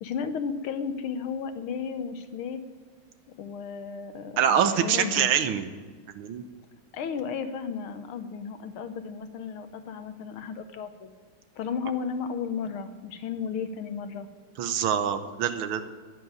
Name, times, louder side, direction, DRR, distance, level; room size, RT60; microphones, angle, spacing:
voice 1, 0.0-2.6 3.4-5.3 6.9-11.1 11.6-14.3, left 6 dB, 75° left, 9 dB, 1.7 m, -34 dB
voice 2, 4.4-5.7 6.1-6.4 14.6-15.9, right 8 dB, 75° right, 9 dB, 1.7 m, -25 dB
10.5 x 9.8 x 9.5 m, 1.5 s
omnidirectional pair, 2.4 m